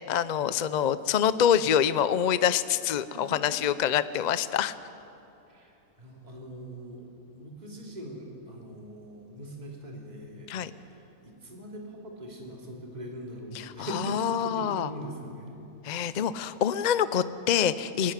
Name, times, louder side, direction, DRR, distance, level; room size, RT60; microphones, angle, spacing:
voice 1, 0.1-4.8 10.5-10.7 13.6-13.7 14.1-14.9 15.8-18.1, left 9 dB, 55° left, 14 dB, 0.5 m, -26 dB
voice 2, 3.1-3.6 5.5-7.1 7.3-15.6 16.4-16.5, equal, 30° right, -2 dB, 2.9 m, -41 dB
26.0 x 11.5 x 9.9 m, 2.9 s
omnidirectional pair, 1.5 m